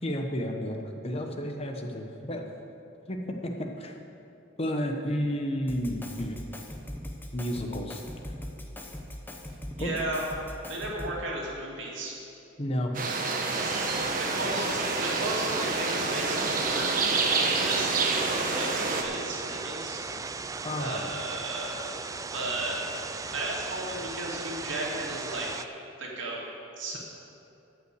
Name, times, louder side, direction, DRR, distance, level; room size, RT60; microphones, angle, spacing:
voice 1, 0.0-0.8 1.0-2.4 3.1-4.0 4.6-6.4 7.3-8.0 9.8-10.1 12.6-12.9 20.6-21.1, equal, 30° left, 3 dB, 1.1 m, -31 dB
Drum kit, 5.7-11.3, left 1 dB, 10° left, 0.8 m, -40 dB
voice 2, 9.8-10.2 10.7-12.1 14.2-17.0 17.6-20.0 20.8-22.0 22.3-22.8 23.3-25.6 26.0-26.4 26.8-27.0, right 2 dB, 70° right, -3 dB, 2.4 m, -35 dB
sound 1, 12.9-19.0, right 3 dB, 45° right, 1.0 m, -28 dB
sound 2, 13.5-25.6, right 4 dB, 15° right, 0.3 m, -37 dB
12.5 x 5.8 x 8.0 m, 2.7 s
head